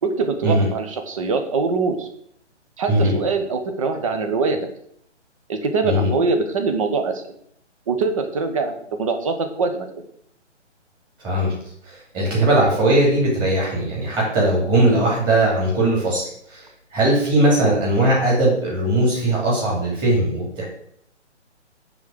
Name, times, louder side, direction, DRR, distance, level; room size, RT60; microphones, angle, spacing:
voice 1, 0.0-2.1 2.8-4.6 5.5-7.3 7.9-9.9, right 4 dB, 30° right, 6 dB, 1.0 m, -23 dB
voice 2, 11.2-11.5 11.8-20.7, right 1 dB, 10° right, -4 dB, 2.6 m, -19 dB
9.4 x 3.9 x 6.4 m, 0.70 s
figure-of-eight pair, 145°, 36 cm